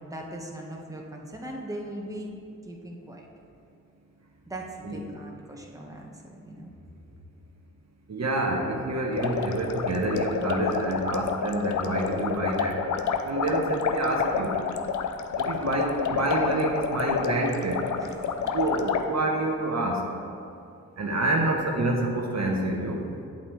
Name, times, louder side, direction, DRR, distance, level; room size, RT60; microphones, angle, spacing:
voice 1, 0.0-2.3 2.6-3.3 4.5-6.7 18.0-18.5, right 1 dB, 10° right, -1 dB, 1.3 m, -39 dB
voice 2, 8.1-12.8 13.2-14.6 15.4-17.9 18.5-20.1 21.0-23.1, right 2 dB, 50° right, 0 dB, 1.2 m, -27 dB
sound 1, 9.1-19.0, left 6 dB, 60° left, 0.6 m, -29 dB
8.6 x 7.8 x 3.2 m, 2.5 s
supercardioid pair, 45°, 34 cm